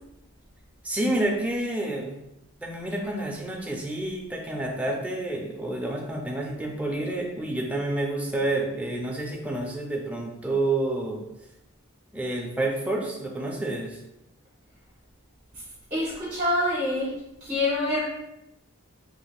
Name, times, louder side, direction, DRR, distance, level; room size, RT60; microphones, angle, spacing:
voice 1, 0.8-2.2 2.6-11.2 12.1-14.0, right 2 dB, 5° right, 0 dB, 0.3 m, -29 dB
voice 2, 15.9-18.0, left 1 dB, 30° right, -7 dB, 0.7 m, -26 dB
3.2 x 3.2 x 2.2 m, 0.89 s
head